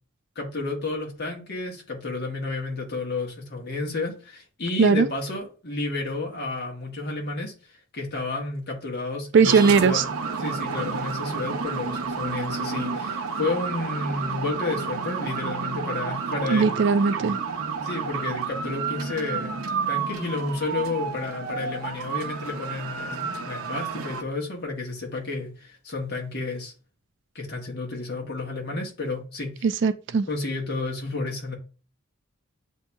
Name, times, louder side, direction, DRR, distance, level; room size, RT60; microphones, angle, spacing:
voice 1, 0.3-7.5 7.9-10.0 10.4-16.7 17.8-19.6 19.9-26.7 27.3-29.7 30.3-31.6, left 3 dB, 50° left, 1.4 m, -31 dB
voice 2, 9.3-10.0 16.5-17.4 29.6-30.3, right 5 dB, 55° right, 0.3 m, -19 dB
sound 1, 9.4-24.2, right 5 dB, 80° right, 0.7 m, -31 dB
8.0 x 2.8 x 2.3 m
head